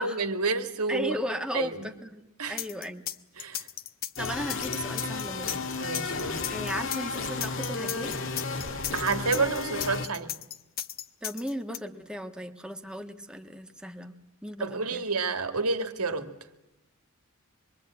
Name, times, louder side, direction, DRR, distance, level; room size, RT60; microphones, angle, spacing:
voice 1, 0.0-1.2 1.5-1.9 2.4-2.6 3.4-3.6 5.8-6.4 8.9-10.3 14.6-16.3, right 4 dB, 80° right, 2.2 m, -29 dB
voice 2, 0.9-3.1 4.2-5.6 6.5-8.1 11.2-14.2 14.4-15.0, equal, 5° right, 1.4 m, -36 dB
sound 1, 2.6-11.8, left 11 dB, 40° left, 0.9 m, -35 dB
sound 2, 4.2-10.1, left 4 dB, 60° left, 1.8 m, -33 dB
25.5 x 22.5 x 8.8 m
head